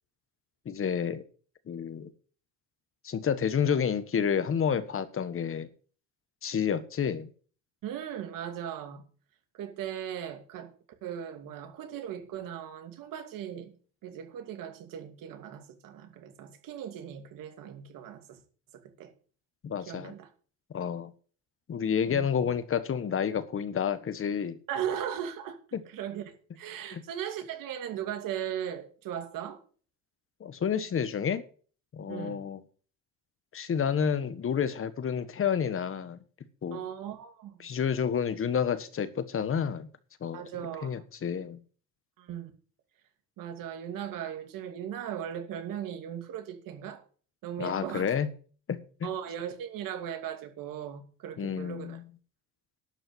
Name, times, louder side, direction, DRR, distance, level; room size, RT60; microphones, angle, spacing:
voice 1, 0.6-1.2 1.7-2.1 3.0-5.7 6.4-7.3 19.6-20.1 20.7-21.1 21.7-24.6 25.7-25.8 26.9-27.0 30.4-31.4 31.9-32.6 33.5-36.2 36.6-36.8 37.6-39.9 40.2-40.4 40.8-41.6 47.6-48.3 48.7-49.1 51.4-52.0, left 7 dB, 35° left, 1.5 m, -29 dB
voice 2, 7.8-9.0 9.5-10.7 11.0-13.7 14.0-18.4 18.7-19.1 19.9-20.3 22.1-22.6 24.7-25.6 25.8-29.6 32.1-32.4 36.7-37.7 40.3-41.0 42.2-42.5 43.4-47.0 47.4-48.1 49.0-52.0, right 9 dB, 65° right, 2.5 m, -38 dB
12.0 x 5.6 x 8.0 m
cardioid pair, 110°, 35 cm